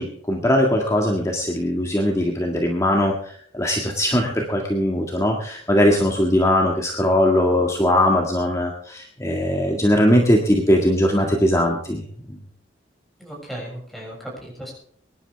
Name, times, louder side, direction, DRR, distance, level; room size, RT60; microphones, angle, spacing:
voice 1, 0.0-12.0, left 1 dB, 15° left, 0 dB, 1.8 m, -20 dB
voice 2, 13.2-14.7, equal, ahead, -3 dB, 6.8 m, -36 dB
24.0 x 11.5 x 3.5 m, 0.63 s
head